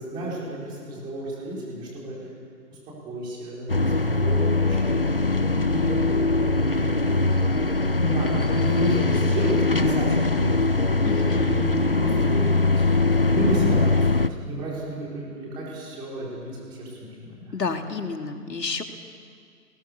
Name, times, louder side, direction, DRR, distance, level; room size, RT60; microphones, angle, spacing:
voice 1, 0.0-2.2 2.7-17.5, right 1 dB, 10° right, -5 dB, 4.4 m, -32 dB
sound 1, 3.7-14.3, left 3 dB, 35° left, 0.6 m, -22 dB
voice 2, 11.0-11.5 17.5-18.8, left 4 dB, 80° left, 5 dB, 2.7 m, -30 dB
27.5 x 21.0 x 6.9 m, 2.1 s
hypercardioid pair, 170°, 49 cm